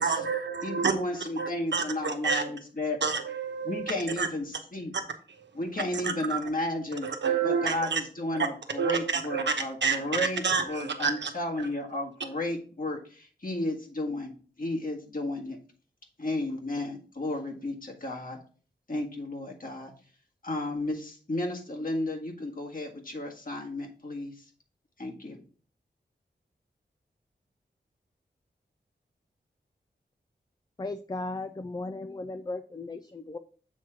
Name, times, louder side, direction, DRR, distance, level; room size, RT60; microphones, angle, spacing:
voice 1, 0.0-0.9 1.4-2.4 3.0-4.3 4.9-5.0 5.3-5.5 6.0-6.4 7.0-8.0 8.3-8.5 8.8-9.5 9.8-11.3 11.6-11.7, right 5 dB, 75° right, 6 dB, 1.0 m, -29 dB
voice 2, 0.6-3.0 3.6-4.9 5.5-7.1 7.4-14.3 14.6-15.6 16.2-18.4 18.9-19.9 20.4-24.3 25.0-25.4, left 1 dB, 50° left, 1 dB, 1.8 m, -33 dB
voice 3, 30.8-33.4, left 2 dB, 20° left, 8 dB, 0.5 m, -36 dB
7.2 x 3.2 x 5.9 m, 0.41 s
cardioid pair, 50°, 19 cm